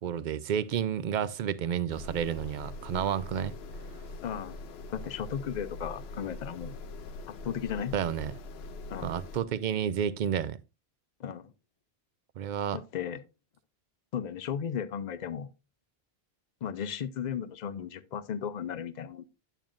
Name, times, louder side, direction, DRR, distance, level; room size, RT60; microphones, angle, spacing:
voice 1, 0.0-3.5 7.9-8.3 9.0-10.6 12.4-12.8, right 9 dB, 55° right, 0.6 m, -30 dB
sound 1, 1.9-9.4, left 2 dB, 75° left, 0.9 m, -43 dB
voice 2, 4.2-4.6 4.9-6.8 7.3-7.9 8.9-9.2 11.2-11.5 12.7-13.2 14.1-15.5 16.6-19.2, left 8 dB, 50° left, 0.6 m, -35 dB
9.0 x 8.9 x 2.5 m
omnidirectional pair, 1.1 m